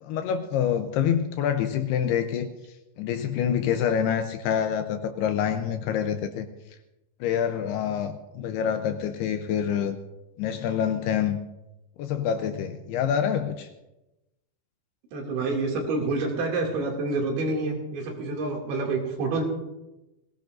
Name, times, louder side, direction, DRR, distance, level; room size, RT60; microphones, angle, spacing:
voice 1, 0.0-2.5 3.0-6.5 7.2-10.0 10.4-11.4 12.0-13.7, left 8 dB, 80° left, 8 dB, 2.5 m, -26 dB
voice 2, 15.1-19.4, right 3 dB, 85° right, 0 dB, 4.7 m, -28 dB
20.5 x 17.0 x 2.6 m, 0.98 s
omnidirectional pair, 5.1 m